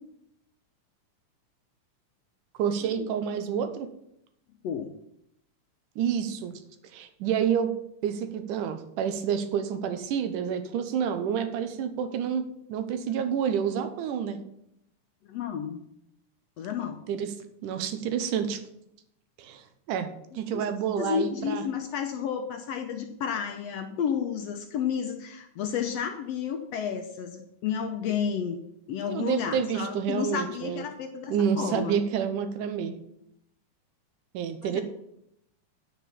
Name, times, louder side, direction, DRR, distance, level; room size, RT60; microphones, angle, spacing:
voice 1, 2.6-3.9 6.0-6.6 6.9-7.7 8.0-12.4 12.7-14.4 17.1-17.3 17.6-18.6 19.4-19.6 19.9-20.1 20.3-21.6 29.1-30.9 31.3-33.0 34.3-34.8, right 8 dB, 85° right, 9 dB, 2.5 m, -28 dB
voice 2, 15.2-15.8 16.6-17.0 20.5-20.6 21.0-28.6 28.9-32.0 34.6-34.8, left 7 dB, 75° left, 5 dB, 1.5 m, -31 dB
9.4 x 5.3 x 7.2 m, 0.76 s
omnidirectional pair, 3.6 m